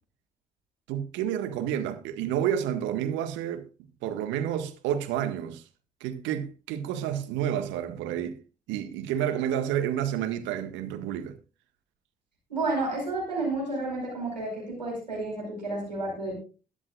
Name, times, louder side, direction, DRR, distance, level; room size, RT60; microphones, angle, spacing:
voice 1, 0.9-3.6 4.0-5.6 6.0-8.4 8.7-11.4, right 10 dB, 65° right, 1.8 m, -30 dB
voice 2, 12.5-16.3, right 2 dB, 90° right, 5.1 m, -31 dB
21.5 x 7.3 x 2.5 m
figure-of-eight pair, 40°, 21 cm